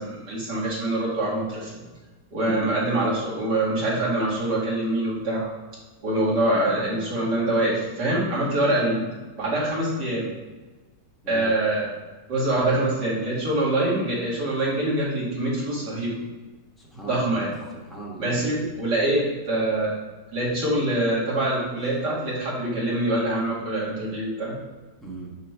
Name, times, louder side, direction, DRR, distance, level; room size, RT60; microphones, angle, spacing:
voice 1, 0.0-1.7 2.3-5.5 6.0-9.1 9.4-10.3 11.3-11.9 12.3-16.1 17.1-17.5 18.2-20.0 20.3-24.5, right 1 dB, 70° right, -7 dB, 2.7 m, -24 dB
voice 2, 11.2-11.5 16.8-17.5 17.7-18.6 25.0-25.3, right 3 dB, ahead, -4 dB, 1.0 m, -38 dB
8.3 x 3.0 x 4.6 m, 1.2 s
omnidirectional pair, 1.9 m